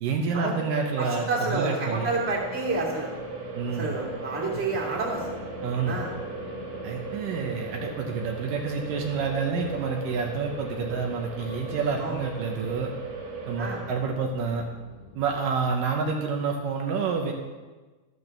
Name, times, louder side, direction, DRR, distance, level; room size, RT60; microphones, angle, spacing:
voice 1, 0.0-2.1 3.5-4.0 5.6-6.0 6.8-12.9 13.5-14.7 15.2-17.3, right 5 dB, 75° right, 2 dB, 2.4 m, -28 dB
sound 1, 0.5-13.8, right 5 dB, 55° right, 2.4 m, -38 dB
voice 2, 1.0-3.1 3.8-5.2 5.8-6.1 12.0-12.2 13.6-13.8, right 3 dB, 5° right, -5 dB, 1.9 m, -29 dB
sound 2, 1.9-15.7, left 5 dB, 55° left, 1.8 m, -44 dB
13.0 x 12.0 x 3.3 m, 1.3 s
omnidirectional pair, 4.3 m